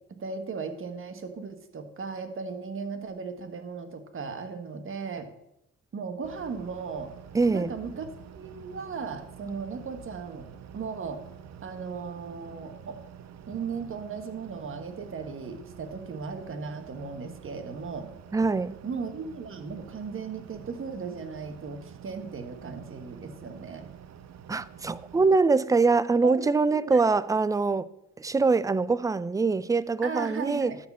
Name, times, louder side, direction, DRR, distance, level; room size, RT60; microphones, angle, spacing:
voice 1, 0.2-5.3 5.9-7.1 7.5-8.1 8.3-10.5 10.7-11.2 11.6-13.0 13.5-18.1 18.8-23.9 26.2-26.5 26.7-27.0 30.0-30.8, right 5 dB, 45° right, 1.5 m, -36 dB
sound 1, 6.2-25.4, right 8 dB, 60° right, 0.8 m, -48 dB
voice 2, 7.3-7.7 18.3-18.8 24.5-27.9 28.2-30.7, right 4 dB, 10° right, 0.4 m, -24 dB
12.0 x 4.3 x 7.2 m
cardioid pair, 90°, 30 cm